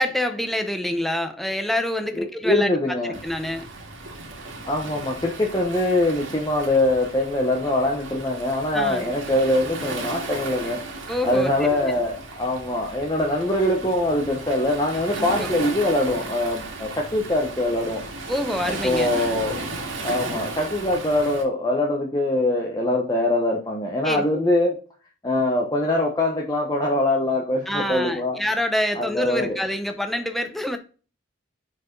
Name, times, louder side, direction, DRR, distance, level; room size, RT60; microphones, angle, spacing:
voice 1, 0.0-2.7 3.2-3.7 8.7-9.1 11.1-11.5 15.2-15.5 18.3-19.3 24.0-24.2 27.7-30.8, left 1 dB, ahead, 6 dB, 0.7 m, -26 dB
voice 2, 2.1-3.1 4.7-10.8 11.2-18.0 18.7-19.6 20.0-24.8 25.2-28.4 28.9-29.6, left 1 dB, 20° left, -1 dB, 1.0 m, -23 dB
Waves surf, 3.1-21.4, right 3 dB, 85° right, 2.1 m, -35 dB
6.8 x 4.6 x 3.9 m, 0.36 s
head